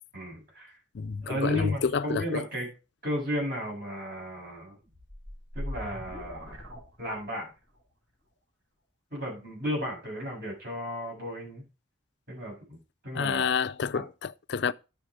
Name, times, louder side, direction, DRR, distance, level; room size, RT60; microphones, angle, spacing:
voice 1, 0.1-0.8 1.2-2.7 3.0-4.8 5.5-6.6 7.0-7.5 9.1-11.6 12.3-12.8 13.0-13.5 13.9-14.0, equal, 50° right, 7.2 m, -34 dB
voice 2, 0.9-2.4 13.1-14.7, left 5 dB, 60° left, 0.4 m, -29 dB
sound 1, 4.9-7.6, left 1 dB, 80° right, 6.2 m, -40 dB
10.0 x 7.1 x 4.8 m
head